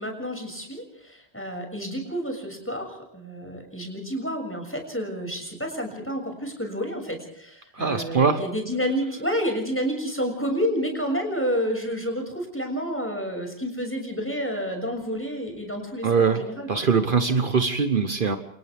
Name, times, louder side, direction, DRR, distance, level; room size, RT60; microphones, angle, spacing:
voice 1, 0.0-16.7, equal, 10° left, 3 dB, 6.7 m, -29 dB
voice 2, 7.7-8.4 16.0-18.4, right 5 dB, 55° right, 8 dB, 1.3 m, -22 dB
29.0 x 28.0 x 3.6 m, 0.74 s
omnidirectional pair, 1.0 m